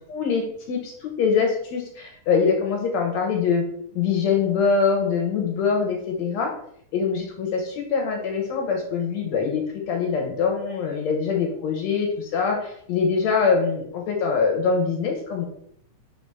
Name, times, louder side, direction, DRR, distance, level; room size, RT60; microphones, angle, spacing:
voice 1, 0.1-3.6 4.0-6.5 6.9-15.5, left 5 dB, 70° left, 2 dB, 1.9 m, -23 dB
4.9 x 3.8 x 5.5 m, 0.69 s
omnidirectional pair, 3.7 m